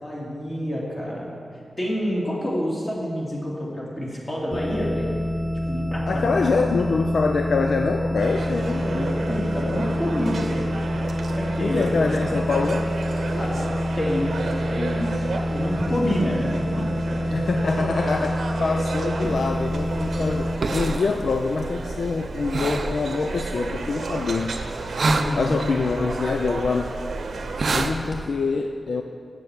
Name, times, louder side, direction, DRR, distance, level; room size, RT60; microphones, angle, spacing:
voice 1, 0.0-1.3 1.8-5.1 5.7-6.6 8.3-10.8 11.3-12.4 13.3-17.2 19.2-19.3 25.2-25.6, equal, 30° left, -4 dB, 2.2 m, -28 dB
sound 1, 4.5-20.6, equal, 5° left, 0.5 m, -27 dB
voice 2, 6.1-9.1 11.6-12.9 17.3-24.5 25.3-26.9 27.7-29.0, left 4 dB, 65° left, 5 dB, 0.4 m, -25 dB
sound 2, 8.2-27.8, right 3 dB, 80° right, 0.8 m, -33 dB
sound 3, 19.2-28.2, right 3 dB, 55° right, 0.5 m, -30 dB
7.9 x 7.5 x 7.0 m, 2.4 s
wide cardioid pair, 160°, 0 cm